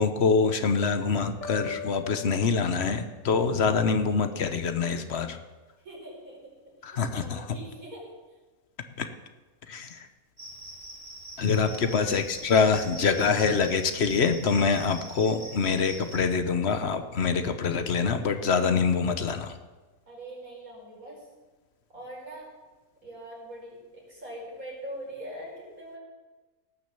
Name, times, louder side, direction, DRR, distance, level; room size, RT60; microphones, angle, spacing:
voice 1, 0.0-5.4 6.8-7.6 9.0-9.1 9.7-10.1 11.4-19.6, left 5 dB, 55° left, 8 dB, 1.0 m, -25 dB
sound 1, 1.4-3.3, left 6 dB, 30° left, 3.3 m, -40 dB
voice 2, 5.8-6.5 6.8-8.1 11.6-12.3 20.1-21.3 21.9-22.5 23.0-26.0, right 1 dB, 70° right, -4 dB, 5.1 m, -42 dB
Cricket, 10.4-16.2, right 1 dB, 35° right, 2.5 m, -43 dB
18.0 x 6.3 x 6.8 m, 1.2 s
omnidirectional pair, 1.5 m